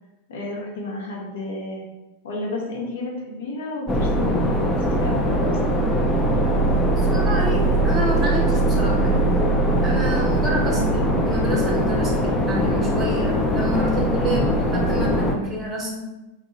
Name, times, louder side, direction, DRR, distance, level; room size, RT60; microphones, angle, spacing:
voice 1, 0.3-1.9 2.2-5.5 10.7-11.0 14.2-14.6, left 2 dB, 60° left, -2 dB, 0.7 m, -31 dB
sound 1, 3.9-15.4, right 1 dB, 15° left, 0.4 m, -21 dB
voice 2, 6.8-9.4 9.8-10.8 11.2-16.0, equal, 25° right, -2 dB, 0.7 m, -28 dB
2.6 x 2.2 x 3.0 m, 1.0 s
figure-of-eight pair, 90°, 0 cm